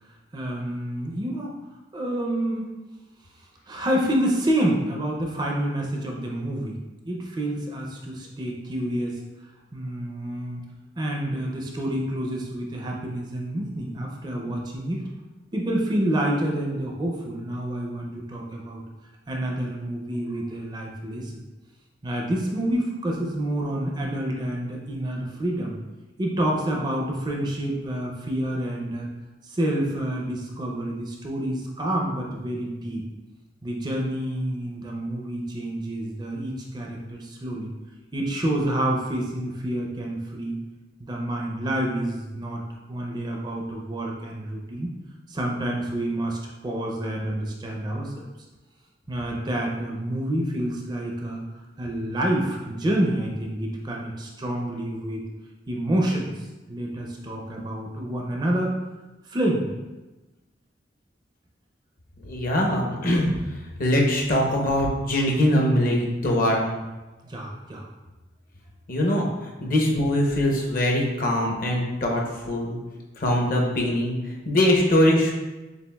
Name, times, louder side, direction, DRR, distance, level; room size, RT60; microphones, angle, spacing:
voice 1, 0.3-1.5 1.9-2.7 3.7-6.8 7.1-9.2 9.7-10.6 11.0-15.1 15.5-18.8 19.3-21.4 22.0-25.8 26.2-29.1 29.4-33.0 33.6-37.7 38.1-40.6 41.0-42.6 42.9-44.9 45.3-48.3 49.1-51.4 51.8-55.2 55.7-58.8 59.2-59.7 67.2-67.9 69.8-70.0, right 1 dB, 25° right, -1 dB, 0.5 m, -28 dB
voice 2, 62.2-63.3 63.8-66.7 68.9-69.3 69.6-72.8 73.2-74.1 74.5-75.3, left 1 dB, 50° left, 0 dB, 0.7 m, -22 dB
6.9 x 2.4 x 2.3 m, 1.1 s
head